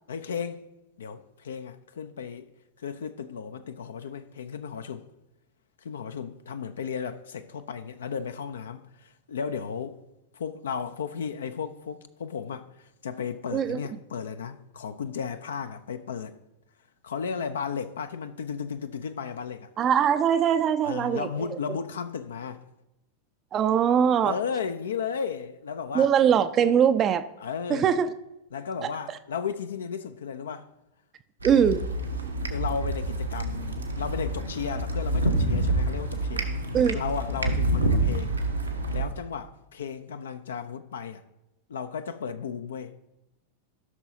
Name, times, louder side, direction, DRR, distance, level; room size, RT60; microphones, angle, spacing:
voice 1, 0.1-0.6 1.0-2.5 2.8-5.1 5.8-10.0 10.3-16.4 17.0-19.7 20.8-22.6 24.2-26.1 27.4-27.9 28.5-30.7 32.5-36.5 36.9-38.4 38.9-41.2 41.7-42.9, left 6 dB, 65° left, 0.4 m, -34 dB
voice 2, 19.8-21.5 23.5-24.4 25.9-27.2 27.7-28.1 31.4-31.9 36.7-37.0, right 8 dB, 30° right, 0.4 m, -22 dB
sound 1, 31.4-39.0, right 1 dB, 85° right, 1.1 m, -27 dB
14.0 x 6.1 x 2.7 m
figure-of-eight pair, 90°, 0 cm